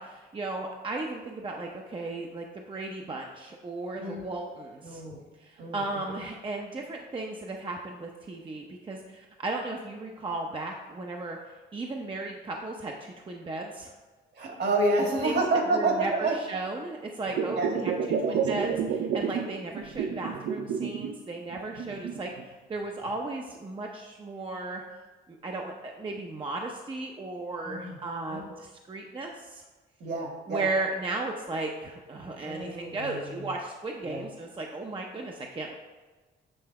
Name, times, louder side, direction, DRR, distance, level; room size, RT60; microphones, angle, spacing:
voice 1, 0.0-5.0 5.4-11.4 11.7-13.9 15.2-15.4 15.7-24.8 25.3-29.6 30.5-35.7, right 2 dB, 25° right, 1 dB, 0.6 m, -35 dB
voice 2, 4.0-4.3 4.8-5.2 5.6-5.8 14.4-16.4 17.5-17.7 18.2-18.4 27.6-28.0 28.3-28.5 30.0-30.7 32.4-33.4 34.0-34.3, right 2 dB, 55° right, 1 dB, 1.6 m, -29 dB
sound 1, 17.3-19.5 19.7-21.1 21.5-22.4 23.1-23.2, right 6 dB, 75° right, 0.6 m, -30 dB
7.8 x 3.3 x 4.7 m, 1.3 s
cardioid pair, 90°, 20 cm